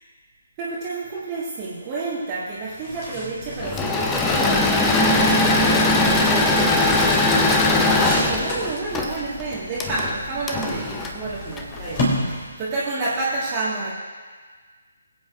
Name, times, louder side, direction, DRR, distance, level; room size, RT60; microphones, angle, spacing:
voice 1, 0.6-7.1 7.3-13.9, right 3 dB, 20° right, -8 dB, 1.7 m, -30 dB
sound 1, 2.6-12.9, left 1 dB, 30° left, 3.1 m, -33 dB
Engine / Mechanisms, 3.6-12.0, left 2 dB, 10° left, 0.7 m, -20 dB
22.0 x 8.3 x 2.5 m, 1.5 s
figure-of-eight pair, 140°, 0 cm